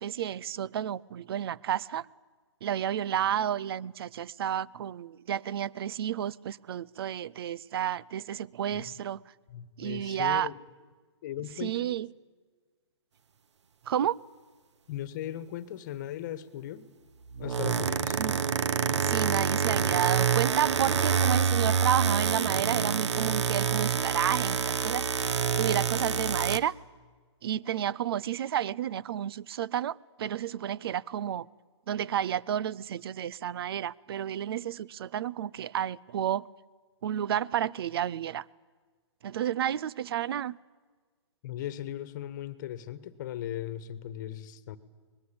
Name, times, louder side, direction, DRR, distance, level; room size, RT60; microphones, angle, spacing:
voice 1, 0.0-2.1 2.6-9.2 9.8-10.5 11.6-12.1 13.9-14.2 18.1-18.6 19.0-26.7 27.4-31.5 31.9-36.5 37.0-38.5 39.2-40.6, right 10 dB, 55° right, 0.6 m, -31 dB
voice 2, 9.5-10.5 11.2-11.9 14.9-16.8 17.4-18.3 41.4-44.8, left 11 dB, 40° left, 1.5 m, -38 dB
sound 1, 17.3-26.6, right 7 dB, 70° right, 1.1 m, -27 dB
24.0 x 20.5 x 8.7 m
hypercardioid pair, 140°, 15 cm